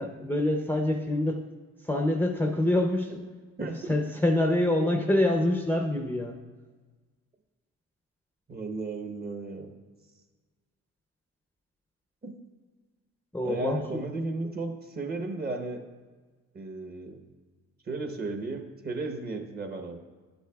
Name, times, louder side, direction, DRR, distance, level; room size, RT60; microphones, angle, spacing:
voice 1, 0.0-1.4 1.8-3.3 3.6-6.4 13.3-14.0, left 1 dB, 5° left, 3 dB, 0.6 m, -26 dB
voice 2, 3.6-3.9 8.5-9.7 12.2-12.4 13.4-15.8 16.5-17.2 17.8-20.0, right 3 dB, 30° right, 5 dB, 1.0 m, -34 dB
10.5 x 8.0 x 2.3 m, 1.4 s
cardioid pair, 90°, 30 cm